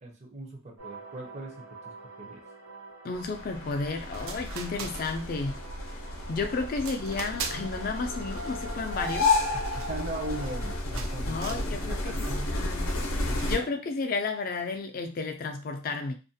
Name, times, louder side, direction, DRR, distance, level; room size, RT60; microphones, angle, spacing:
voice 1, 0.0-2.4 9.5-12.6 13.2-13.6, right 2 dB, 35° right, 2 dB, 0.5 m, -40 dB
sound 1, 0.8-10.8, equal, 65° right, 1.0 m, -44 dB
voice 2, 3.0-5.5 6.3-9.3 11.3-12.2 12.5-12.9 13.4-16.1, left 4 dB, 45° left, 6 dB, 0.4 m, -32 dB
sound 2, 3.1-13.6, left 2 dB, 90° left, 0.6 m, -32 dB
sound 3, 3.8-3.9 4.1-5.5 5.9-6.3 6.8-7.8 8.1-10.6 10.9-11.7 12.1-12.5 13.4-13.6, right 6 dB, 80° right, 0.4 m, -42 dB
2.4 x 2.2 x 2.6 m, 0.32 s
head